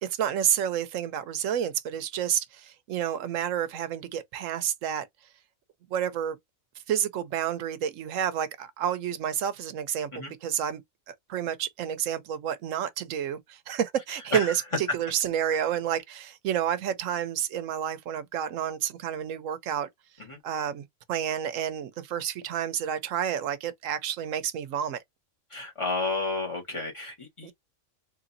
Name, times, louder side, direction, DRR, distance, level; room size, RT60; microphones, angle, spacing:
voice 1, 0.0-5.1 5.9-6.4 6.9-10.8 11.1-19.9 20.4-25.0 27.4-27.5, right 9 dB, 75° right, 1.0 m, -30 dB
voice 2, 25.5-27.5, left 3 dB, 20° left, 1.8 m, -31 dB
3.9 x 3.1 x 2.6 m
omnidirectional pair, 1.4 m